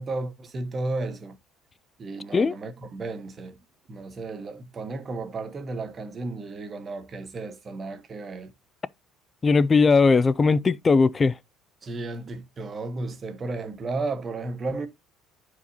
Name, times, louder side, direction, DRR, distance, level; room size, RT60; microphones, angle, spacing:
voice 1, 0.0-1.4 2.0-3.6 3.9-8.5 11.8-14.9, right 3 dB, 25° right, 1.0 m, -33 dB
voice 2, 9.4-11.3, left 4 dB, 20° left, 0.3 m, -19 dB
10.5 x 4.8 x 2.8 m
cardioid pair, 165°, 0 cm